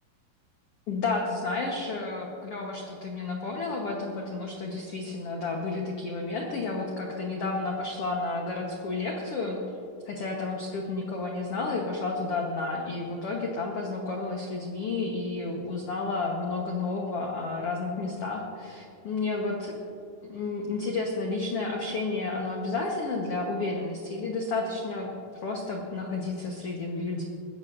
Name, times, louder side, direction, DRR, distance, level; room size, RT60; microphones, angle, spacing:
voice 1, 0.9-9.6 10.0-19.8 20.2-25.1 25.4-27.2, left 3 dB, 85° left, 0 dB, 1.3 m, -31 dB
21.0 x 14.5 x 2.6 m, 2.6 s
omnidirectional pair, 4.5 m